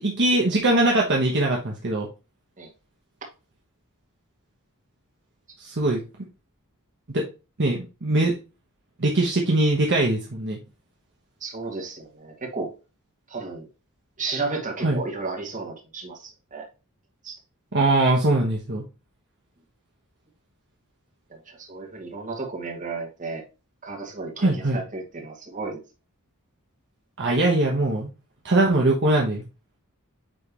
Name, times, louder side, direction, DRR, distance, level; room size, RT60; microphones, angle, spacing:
voice 1, 0.0-2.1 5.6-6.0 7.1-7.2 7.6-8.3 9.0-10.6 14.8-15.0 17.7-18.8 24.4-24.8 27.2-28.1 28.4-29.5, right 2 dB, 55° right, -2 dB, 1.2 m, -21 dB
voice 2, 11.4-12.7 13.3-13.7 14.2-16.7 17.2-17.4 21.5-23.4 23.8-25.8, right 3 dB, 35° right, -1 dB, 2.1 m, -33 dB
9.1 x 3.5 x 3.0 m, 0.30 s
head